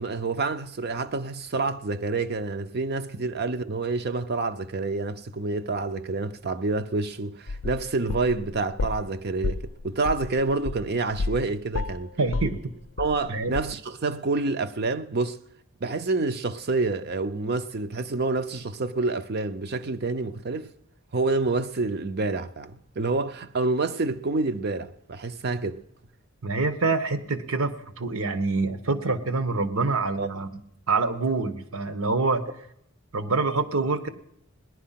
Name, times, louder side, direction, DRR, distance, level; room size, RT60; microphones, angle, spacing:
voice 1, 0.0-12.1 13.0-15.4 15.8-20.7 21.1-25.8 30.2-30.3, right 3 dB, 50° right, 0.6 m, -28 dB
sound 1, 7.5-9.1 9.4-11.5 11.7-13.3 13.5-13.6, left 3 dB, 90° left, 0.5 m, -31 dB
voice 2, 12.2-12.6 13.3-13.5 26.4-30.5 30.9-32.4 33.1-34.1, right 3 dB, 85° right, 1.2 m, -26 dB
18.0 x 11.0 x 5.8 m
head